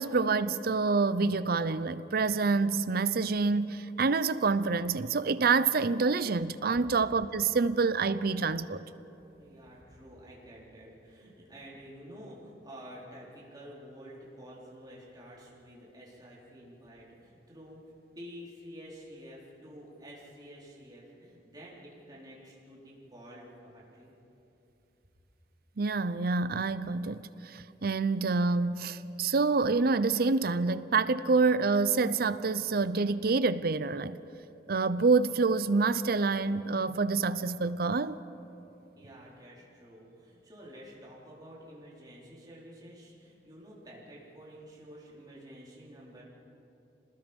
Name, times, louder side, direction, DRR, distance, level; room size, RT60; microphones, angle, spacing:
voice 1, 0.0-8.8 25.8-34.2 34.7-38.2, right 4 dB, 55° right, 0.6 m, -27 dB
voice 2, 9.4-17.8 18.1-24.1 39.0-46.2, equal, 20° right, 4.4 m, -50 dB
27.0 x 20.0 x 5.3 m
head